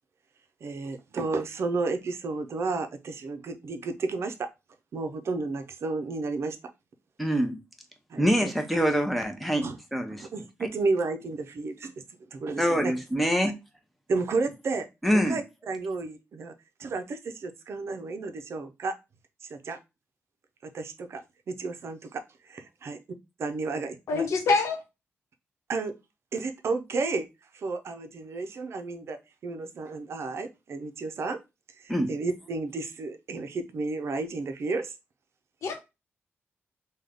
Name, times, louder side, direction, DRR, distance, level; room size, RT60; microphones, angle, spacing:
voice 1, 0.6-4.5 4.9-6.6 8.1-8.5 9.6-9.8 10.1-11.9 12.3-12.9 13.4-13.5 14.1-14.9 15.1-16.5 16.8-18.9 19.5-19.8 20.6-21.2 21.5-23.0 23.4-24.2 25.7-25.9 26.3-27.3 27.5-31.4 31.8-34.9, right 3 dB, 65° right, 0.6 m, -32 dB
voice 2, 7.2-7.6 8.2-10.3 12.6-13.6 15.0-15.4 31.9-32.2, equal, ahead, 0.8 m, -25 dB
voice 3, 24.1-24.8 35.6-35.8, left 4 dB, 80° left, 0.9 m, -25 dB
3.5 x 2.3 x 3.5 m
cardioid pair, 90°, 5 cm